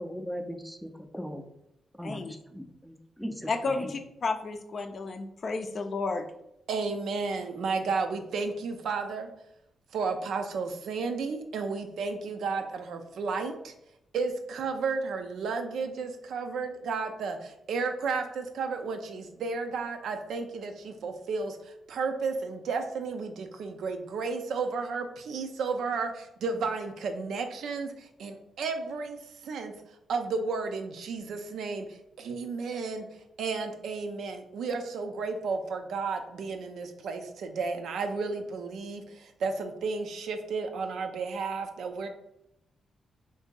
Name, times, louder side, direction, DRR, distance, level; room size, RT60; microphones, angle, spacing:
voice 1, 0.0-1.4 2.0-2.2 2.6-3.9, equal, ahead, 6 dB, 0.5 m, -38 dB
voice 2, 3.5-6.3, left 3 dB, 55° left, 6 dB, 0.4 m, -32 dB
voice 3, 6.7-9.3 9.9-13.7 14.1-33.1 33.4-42.1, right 4 dB, 80° right, 6 dB, 0.4 m, -33 dB
2.7 x 2.6 x 3.7 m, 0.81 s
cardioid pair, 75°, 0 cm